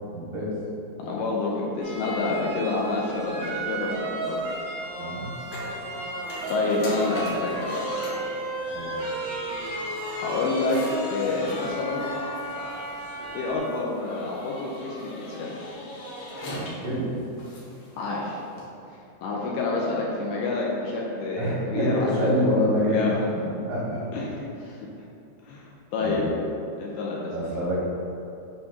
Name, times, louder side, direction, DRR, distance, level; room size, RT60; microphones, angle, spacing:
voice 1, 0.1-0.5 5.0-5.3 8.7-8.9 16.7-17.1 21.3-23.2 23.5-24.0 26.0-26.3 27.3-27.8, equal, 70° right, -7 dB, 2.1 m, -26 dB
voice 2, 1.0-4.4 6.5-7.9 10.1-10.8 11.1-12.1 13.3-15.5 18.0-18.4 19.2-22.3 22.9-23.2 24.1-24.9 25.5-26.3 26.8-27.3, left 3 dB, 90° left, -3 dB, 2.3 m, -28 dB
sound 1, 1.8-13.6, right 1 dB, 90° right, 1.6 m, -33 dB
sound 2, 5.3-18.7, left 1 dB, 70° left, 1.9 m, -41 dB
7.6 x 2.8 x 5.8 m, 2.7 s
omnidirectional pair, 5.1 m